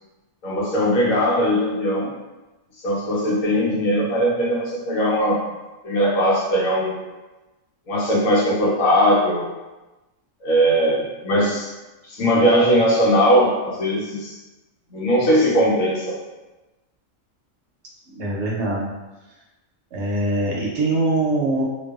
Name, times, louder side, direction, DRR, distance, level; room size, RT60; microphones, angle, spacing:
voice 1, 0.4-2.1 2.8-5.4 5.8-7.0 7.9-9.5 10.4-11.7 12.0-14.4 14.9-16.2, equal, 85° left, -5 dB, 1.2 m, -19 dB
voice 2, 18.1-18.9 19.9-21.6, right 2 dB, 65° right, -3 dB, 0.8 m, -23 dB
2.5 x 2.2 x 2.3 m, 1.1 s
omnidirectional pair, 1.3 m